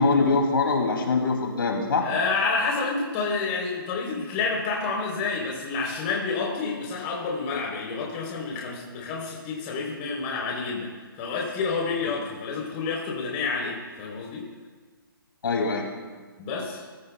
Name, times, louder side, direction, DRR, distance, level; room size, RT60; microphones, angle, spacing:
voice 1, 0.0-2.1 15.4-15.9, left 3 dB, 70° left, 1 dB, 2.7 m, -23 dB
voice 2, 2.0-10.9 11.2-14.4 16.4-16.8, left 4 dB, 25° left, -2 dB, 3.7 m, -29 dB
18.0 x 15.5 x 2.3 m, 1.5 s
hypercardioid pair, 160°, 12 cm